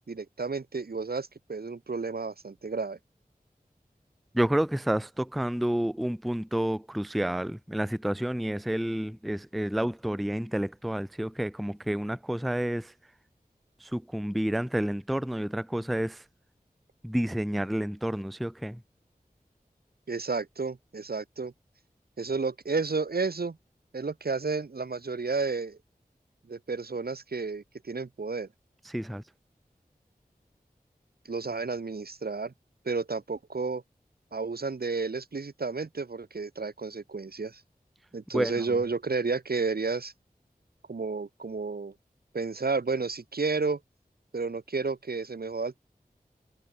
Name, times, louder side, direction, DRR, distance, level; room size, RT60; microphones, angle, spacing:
voice 1, 0.0-3.0 20.1-21.5 22.2-23.6 23.9-25.8 26.5-28.5 31.3-32.5 32.8-33.8 34.3-37.6 38.1-40.1 40.9-41.9 42.3-43.8 44.3-45.8, right 4 dB, 85° right, 1.6 m, -31 dB
voice 2, 4.3-12.9 13.8-16.2 17.0-18.8 28.9-29.2 38.3-38.5, right 1 dB, ahead, 0.4 m, -29 dB
wide cardioid pair, 60°, 16 cm